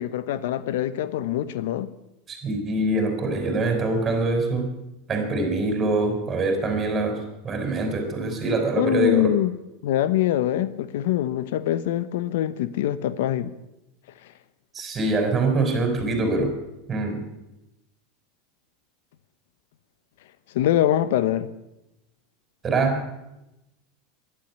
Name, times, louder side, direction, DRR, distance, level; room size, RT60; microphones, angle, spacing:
voice 1, 0.0-1.9 8.8-9.5 9.8-13.5 20.5-21.5, left 12 dB, 80° left, 15 dB, 0.9 m, -24 dB
voice 2, 2.3-4.7 5.1-9.3 14.7-16.5 16.9-17.2 22.6-23.0, right 2 dB, 25° right, 5 dB, 5.3 m, -24 dB
12.0 x 11.0 x 9.8 m, 0.91 s
supercardioid pair, 120°, 0 cm